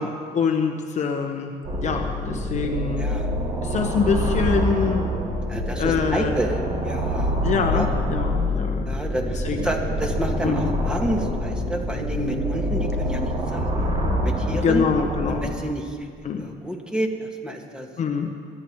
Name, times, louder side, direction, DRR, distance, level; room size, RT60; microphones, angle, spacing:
voice 1, 0.0-3.1 3.6-5.0 5.8-6.3 7.4-8.9 9.3-9.7 10.4-10.7 14.5-15.5 16.2-16.5 18.0-18.3, left 5 dB, 45° left, 3 dB, 1.0 m, -25 dB
sound 1, 1.6-15.4, equal, 40° right, 2.6 m, -26 dB
voice 2, 3.0-3.3 5.5-7.4 7.7-7.9 8.8-13.9 14.2-14.8 15.2-16.1 16.4-17.9, equal, 5° right, 0 dB, 1.9 m, -29 dB
24.0 x 11.0 x 3.1 m, 2.1 s
cardioid pair, 110°, 17 cm